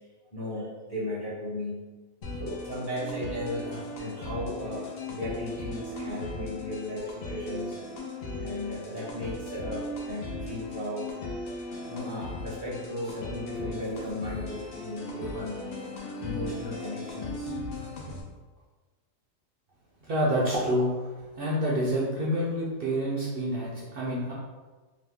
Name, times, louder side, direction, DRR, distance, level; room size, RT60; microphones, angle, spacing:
voice 1, 0.3-1.8 2.4-7.7 8.4-11.1 11.9-15.7 16.0-17.6, left 1 dB, 25° left, -8 dB, 0.7 m, -36 dB
sound 1, 2.2-18.2, left 1 dB, 55° left, 0.7 m, -37 dB
voice 2, 20.0-20.9 21.3-24.3, equal, 55° right, -5 dB, 0.7 m, -27 dB
2.9 x 2.3 x 3.4 m, 1.3 s
omnidirectional pair, 1.3 m